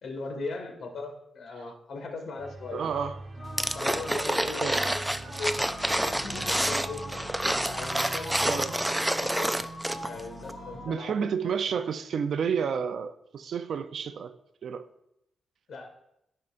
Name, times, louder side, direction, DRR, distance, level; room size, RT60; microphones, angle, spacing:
voice 1, 0.0-2.8 3.7-5.7 6.0-7.1 7.4-8.9 9.2-9.5 10.1-11.1 11.4-11.6 15.7-15.9, left 3 dB, 70° left, 1.8 m, -38 dB
sound 1, 2.4-9.4, right 2 dB, 50° right, 2.0 m, -44 dB
voice 2, 2.7-3.2 4.6-4.8 8.4-8.7 10.9-14.3 14.6-14.8, right 6 dB, 70° right, 0.6 m, -30 dB
sound 2, 3.4-10.9, equal, 10° left, 3.5 m, -42 dB
sound 3, 3.6-10.2 10.5-10.6, right 1 dB, 5° right, 0.4 m, -28 dB
14.5 x 5.5 x 2.6 m
wide cardioid pair, 125°, 0 cm